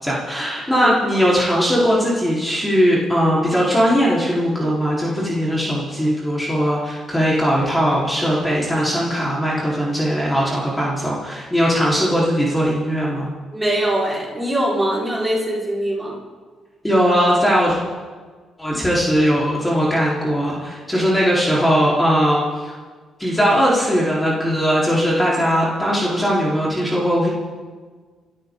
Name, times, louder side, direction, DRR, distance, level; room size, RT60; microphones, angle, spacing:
voice 1, 0.0-13.3 16.8-17.8 18.6-22.7 23.2-27.3, equal, 10° left, -6 dB, 4.6 m, -19 dB
voice 2, 13.5-16.2, right 1 dB, 10° right, -5 dB, 5.3 m, -22 dB
25.0 x 14.0 x 4.1 m, 1.5 s
cardioid pair, 90°, 0 cm